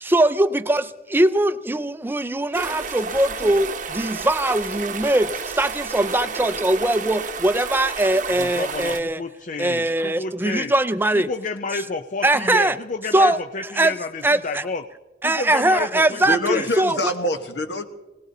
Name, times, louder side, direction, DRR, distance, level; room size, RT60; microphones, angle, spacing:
voice 1, 0.0-9.2 9.6-11.3 12.2-12.8 13.1-13.9 14.2-14.7 15.2-17.0, right 1 dB, 10° right, 13 dB, 0.5 m, -21 dB
sound 1, 2.5-9.0, right 5 dB, 45° right, 0.8 m, -31 dB
voice 2, 8.4-10.7 11.1-14.8 15.2-16.7, left 3 dB, 45° left, 8 dB, 0.6 m, -30 dB
voice 3, 16.2-17.8, left 1 dB, 70° left, 7 dB, 1.2 m, -25 dB
25.0 x 18.5 x 2.8 m, 1.1 s
head